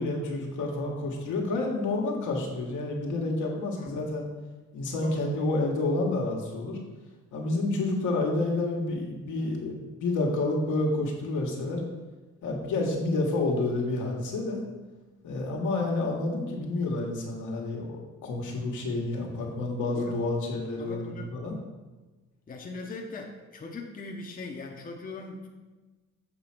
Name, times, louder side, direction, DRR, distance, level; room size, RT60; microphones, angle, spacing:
voice 1, 0.0-4.2 4.7-6.8 7.3-11.8 12.4-14.6 15.2-21.5, left 2 dB, 75° left, -1 dB, 1.4 m, -29 dB
voice 2, 5.0-5.3 19.9-20.2 20.8-21.4 22.5-25.5, left 3 dB, 30° left, 1 dB, 0.8 m, -40 dB
6.8 x 3.2 x 5.9 m, 1.2 s
cardioid pair, 90°, 30 cm